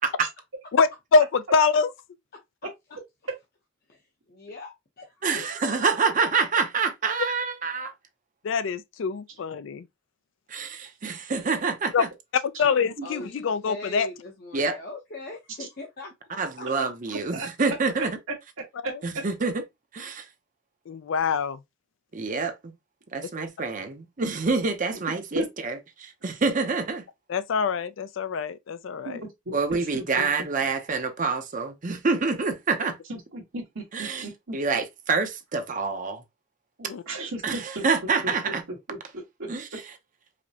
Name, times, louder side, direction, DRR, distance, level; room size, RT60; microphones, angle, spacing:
voice 1, 0.7-1.9 8.4-9.9 11.9-12.0 12.4-14.1 18.9-19.0 20.9-21.6 23.2-23.3 27.3-29.2 36.9-37.0, left 5 dB, 65° left, 0.4 m, -24 dB
voice 2, 4.3-4.7 5.0-5.5 13.0-16.1, left 2 dB, 50° left, 0.8 m, -40 dB
voice 3, 5.2-7.9 10.5-12.1 14.5-14.8 16.4-18.1 19.0-19.5 19.9-20.3 22.1-22.7 23.1-27.0 29.5-33.0 33.9-34.2 34.5-36.2 37.4-38.6 39.5-39.6, right 4 dB, 40° right, 0.6 m, -27 dB
voice 4, 18.8-19.2 25.1-25.5 29.0-30.3 33.1-34.5 36.8-37.8 38.2-38.5 38.9-39.0 39.4-39.8, right 1 dB, 80° right, 1.5 m, -35 dB
4.9 x 2.1 x 2.8 m
head